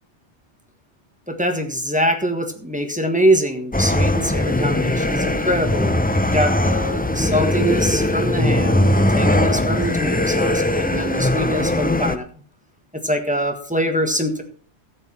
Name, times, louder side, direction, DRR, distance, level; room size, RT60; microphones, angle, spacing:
voice 1, 1.3-12.2 13.0-14.4, equal, 5° right, 4 dB, 1.3 m, -23 dB
sound 1, 3.7-12.2, left 1 dB, 15° left, 0.4 m, -20 dB
13.0 x 8.6 x 4.3 m, 0.44 s
omnidirectional pair, 1.2 m